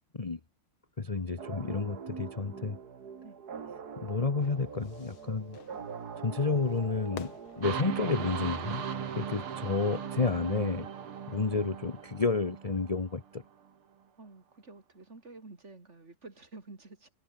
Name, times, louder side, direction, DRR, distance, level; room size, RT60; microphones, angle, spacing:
voice 1, 1.0-2.8 4.0-5.6 6.2-8.8 9.1-10.9 11.3-13.4, left 4 dB, 30° left, 0.6 m, -31 dB
sound 1, 1.4-10.8, right 6 dB, 50° right, 2.2 m, -44 dB
Fire / Fireworks, 4.4-10.0, left 8 dB, 70° left, 2.5 m, -52 dB
sound 2, 7.6-13.3, right 8 dB, 80° right, 2.8 m, -38 dB
voice 2, 14.2-17.1, right 3 dB, 30° right, 3.3 m, -50 dB
omnidirectional pair, 2.4 m